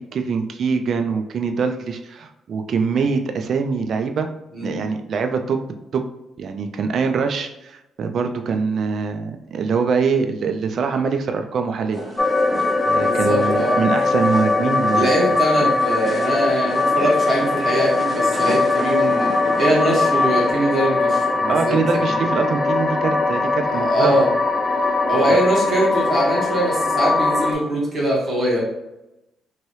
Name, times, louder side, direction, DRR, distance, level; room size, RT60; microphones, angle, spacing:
voice 1, 0.0-4.3 4.6-5.6 5.9-6.0 6.4-12.0 12.9-15.1 21.5-24.2 25.3-25.4, right 5 dB, 60° right, 6 dB, 0.3 m, -23 dB
sound 1, 11.9-20.5, equal, 20° right, 1.1 m, -35 dB
sound 2, 12.2-27.5, left 3 dB, 20° left, 0.4 m, -20 dB
voice 2, 13.0-13.8 14.9-22.0 23.7-24.3 25.0-28.6, right 1 dB, 40° right, -5 dB, 1.4 m, -22 dB
2.9 x 2.7 x 3.1 m, 0.94 s
cardioid pair, 90°, 0 cm